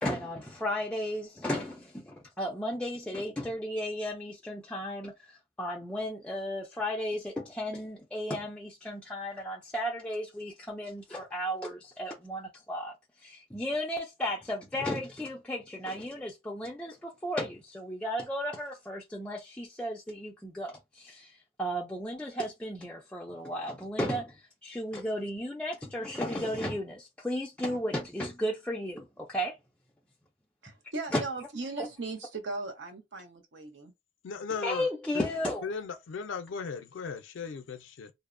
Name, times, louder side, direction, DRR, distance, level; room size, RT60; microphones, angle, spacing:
voice 1, 0.0-12.9 13.2-29.6 31.1-31.2 31.8-31.9 34.6-35.7, equal, 5° left, 0.3 m, -34 dB
voice 2, 30.6-33.9, right 3 dB, 75° right, 0.7 m, -38 dB
voice 3, 34.2-34.9 35.1-35.3 35.6-38.1, left 5 dB, 90° left, 0.4 m, -37 dB
2.6 x 2.0 x 2.5 m
head